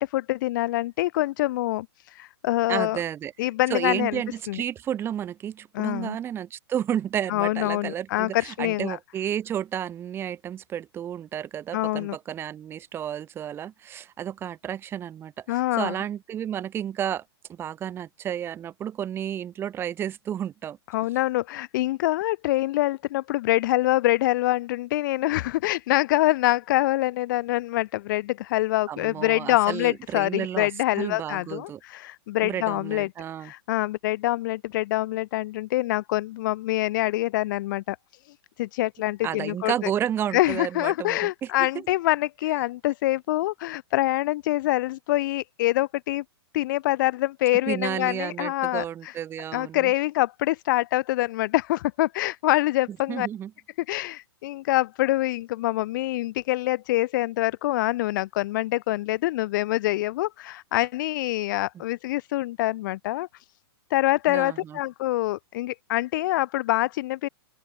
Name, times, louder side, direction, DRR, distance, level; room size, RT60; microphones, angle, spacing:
voice 1, 0.0-3.0 3.4-4.2 4.5-4.6 5.7-6.2 7.3-9.0 11.7-12.2 15.5-15.9 20.9-33.1 33.4-38.0 38.2-39.9 40.3-46.2 46.5-49.1 49.5-53.3 53.9-63.5 63.9-67.3, left 17 dB, 50° left, 3.7 m, -25 dB
voice 2, 2.7-3.3 3.7-17.2 17.5-20.8 28.9-30.7 30.9-31.8 32.4-33.5 39.2-41.5 47.7-49.9 53.1-53.5 64.3-64.8, right 10 dB, 15° right, 1.4 m, -31 dB
open air
hypercardioid pair, 150°, 14 cm